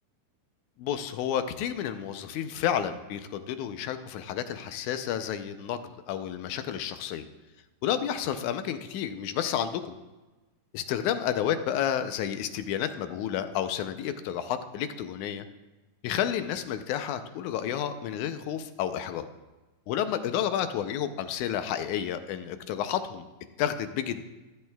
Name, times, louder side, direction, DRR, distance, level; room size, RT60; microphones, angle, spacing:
voice 1, 0.8-5.8 6.1-7.3 7.8-9.9 10.7-15.4 16.0-19.2 19.9-23.2 23.6-24.2, left 9 dB, 80° left, 10 dB, 1.9 m, -30 dB
14.5 x 11.5 x 2.3 m, 1.1 s
omnidirectional pair, 3.7 m